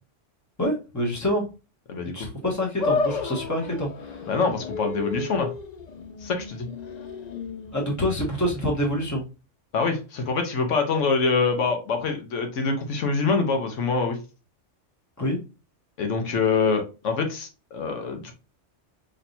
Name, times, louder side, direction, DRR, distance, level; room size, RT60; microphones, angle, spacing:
voice 1, 0.6-1.4 2.1-4.3 7.7-9.2 15.2-15.4, equal, 15° left, -1 dB, 1.2 m, -26 dB
voice 2, 1.9-2.3 4.3-5.5 6.2-6.7 9.7-14.2 16.0-18.3, left 4 dB, 80° left, 5 dB, 1.1 m, -25 dB
sound 1, 2.8-9.2, left 4 dB, 65° left, 0.4 m, -32 dB
4.2 x 3.2 x 2.7 m, 0.31 s
omnidirectional pair, 1.2 m